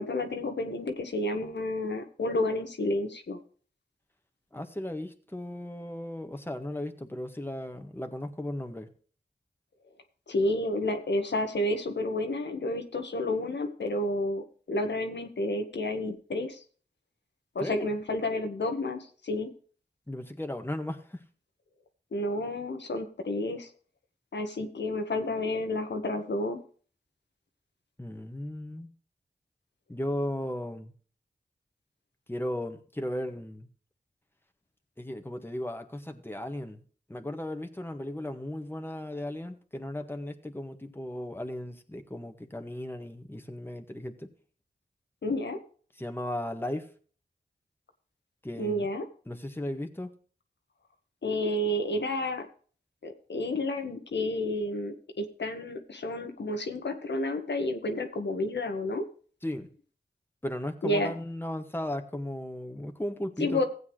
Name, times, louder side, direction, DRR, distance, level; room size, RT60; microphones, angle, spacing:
voice 1, 0.0-3.4 10.3-16.6 17.5-19.5 22.1-23.7 24.3-26.6 45.2-45.6 48.6-49.0 51.2-52.5 53.0-59.0 60.8-61.1 63.4-63.6, left 1 dB, 80° left, 5 dB, 1.5 m, -30 dB
voice 2, 4.5-8.9 17.6-17.9 20.1-21.2 28.0-28.9 29.9-30.9 32.3-33.7 35.0-36.8 37.1-44.3 46.0-46.9 48.4-48.9 49.3-50.1 59.4-59.7 60.4-63.6, left 1 dB, 10° left, 6 dB, 1.6 m, -36 dB
15.5 x 8.3 x 3.2 m, 0.42 s
cardioid pair, 45°, 18 cm